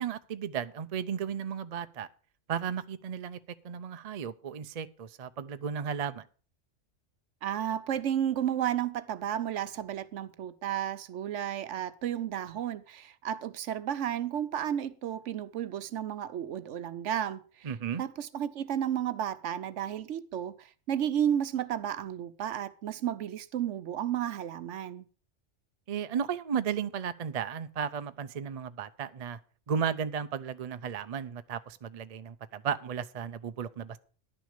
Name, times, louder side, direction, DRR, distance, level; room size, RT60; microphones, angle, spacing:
voice 1, 0.0-2.1 2.5-3.4 3.6-6.3 17.6-18.0 25.9-29.4 29.7-34.0, right 7 dB, 45° right, 0.5 m, -34 dB
voice 2, 7.4-17.7 18.0-25.1, right 10 dB, 75° right, 1.0 m, -32 dB
11.0 x 6.3 x 6.5 m
omnidirectional pair, 1.3 m